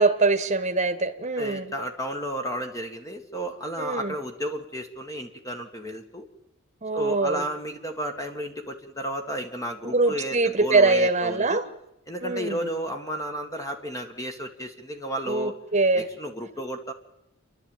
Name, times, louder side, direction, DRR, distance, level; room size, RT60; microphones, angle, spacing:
voice 1, 0.0-1.7 3.8-4.1 6.8-7.4 9.8-11.6 12.2-12.6 15.3-16.1, right 3 dB, 35° right, 8 dB, 1.5 m, -23 dB
voice 2, 1.4-6.3 6.9-11.6 12.1-15.5 16.0-16.9, right 1 dB, 15° left, 5 dB, 1.8 m, -33 dB
29.0 x 11.5 x 9.2 m, 0.87 s
head